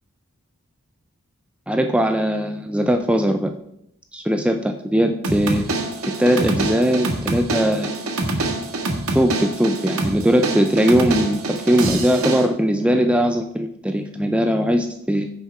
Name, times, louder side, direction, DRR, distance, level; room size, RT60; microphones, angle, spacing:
voice 1, 1.7-3.5 4.1-5.7 6.2-7.9 9.1-15.3, equal, 5° right, 5 dB, 0.5 m, -20 dB
sound 1, 5.2-12.5, right 2 dB, 80° right, 1.8 m, -25 dB
15.0 x 5.8 x 4.3 m, 0.75 s
head